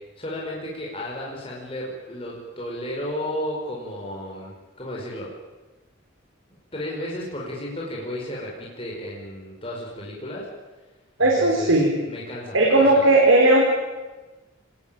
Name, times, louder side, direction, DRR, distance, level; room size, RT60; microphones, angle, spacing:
voice 1, 0.2-5.3 6.7-10.5 11.2-11.7 12.0-13.0, left 1 dB, 30° left, -4 dB, 5.1 m, -33 dB
voice 2, 11.2-11.9 12.5-13.6, right 2 dB, 85° right, -1 dB, 4.5 m, -16 dB
26.0 x 20.5 x 9.1 m, 1.2 s
head